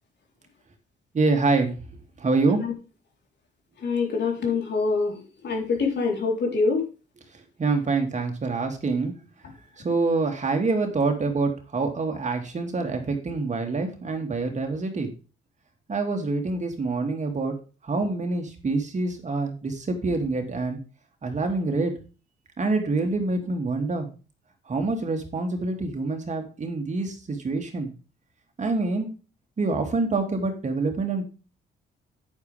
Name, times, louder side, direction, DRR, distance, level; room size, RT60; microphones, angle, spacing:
voice 1, 1.1-1.8 2.2-2.6 7.3-9.1 9.8-15.1 15.9-17.5 17.8-20.8 21.2-21.9 22.6-24.1 24.7-27.9 28.6-29.1 29.6-31.2, right 3 dB, 35° right, 4 dB, 2.7 m, -26 dB
voice 2, 3.8-5.2 5.4-6.8, left 4 dB, 60° left, 1 dB, 4.1 m, -25 dB
9.8 x 9.8 x 3.6 m, 0.33 s
cardioid pair, 90°, 20 cm